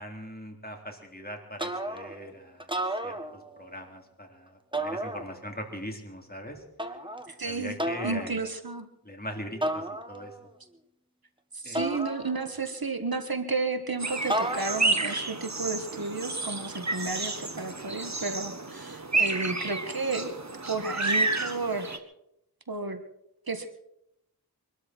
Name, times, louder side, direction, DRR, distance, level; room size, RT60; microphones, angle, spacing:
voice 1, 0.0-6.6 7.4-8.4 9.0-10.3 11.6-11.8, equal, 25° left, 2 dB, 3.7 m, -41 dB
sound 1, 1.6-2.2 2.6-3.7 4.7-5.6 6.8-7.3 7.8-8.3 9.6-10.4 11.7-12.7 14.3-15.0, right 1 dB, 10° right, 1.7 m, -33 dB
voice 2, 7.3-7.8 8.0-8.9 11.5-20.3 20.7-22.0 22.7-23.0 23.5-23.7, right 3 dB, 65° right, 7 dB, 1.6 m, -32 dB
sound 2, 14.0-22.0, right 3 dB, 45° right, 1.6 m, -30 dB
24.0 x 13.0 x 4.6 m, 0.79 s
wide cardioid pair, 40°, 38 cm